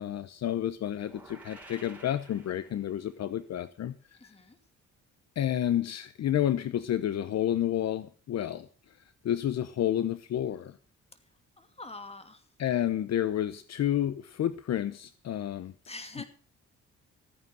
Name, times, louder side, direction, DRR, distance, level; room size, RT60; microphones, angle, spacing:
voice 1, 0.0-3.9 5.4-8.7 9.2-10.8 12.6-15.7, left 11 dB, 60° left, 14 dB, 0.8 m, -30 dB
sound 1, 1.0-3.2, right 2 dB, 5° right, 5.0 m, -52 dB
voice 2, 4.2-4.6 11.6-12.4 15.9-16.2, left 2 dB, 20° left, 8 dB, 2.7 m, -44 dB
14.5 x 9.4 x 6.2 m, 0.40 s
cardioid pair, 90°, 30 cm